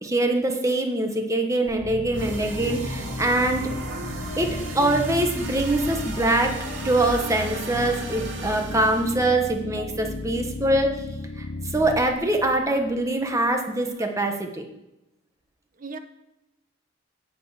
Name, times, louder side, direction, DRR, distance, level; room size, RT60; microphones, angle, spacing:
voice 1, 0.0-3.7 4.4-6.5 6.8-10.9 11.4-14.6, right 2 dB, 15° right, 3 dB, 1.2 m, -23 dB
sound 1, 1.7-13.4, left 2 dB, 55° left, 0.6 m, -35 dB
sound 2, 2.1-9.2, right 1 dB, 70° right, 2.4 m, -34 dB
voice 2, 3.9-4.1 9.8-9.9 14.0-14.1 15.8-16.0, right 3 dB, 45° right, 8 dB, 0.9 m, -39 dB
10.0 x 4.7 x 7.9 m, 0.91 s
head